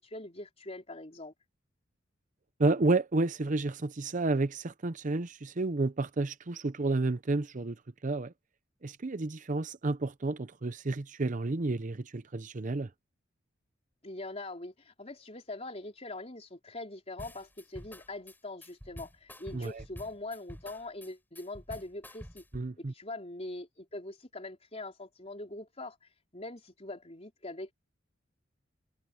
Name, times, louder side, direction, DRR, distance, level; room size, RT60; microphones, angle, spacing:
voice 1, 0.0-1.3 14.0-22.4 22.8-27.7, left 2 dB, 35° left, 4.1 m, -43 dB
voice 2, 2.6-7.8 8.0-8.3 8.8-12.9 19.5-19.8 22.5-22.9, right 2 dB, 40° right, 0.7 m, -31 dB
sound 1, 17.2-22.7, equal, 10° left, 7.4 m, -48 dB
head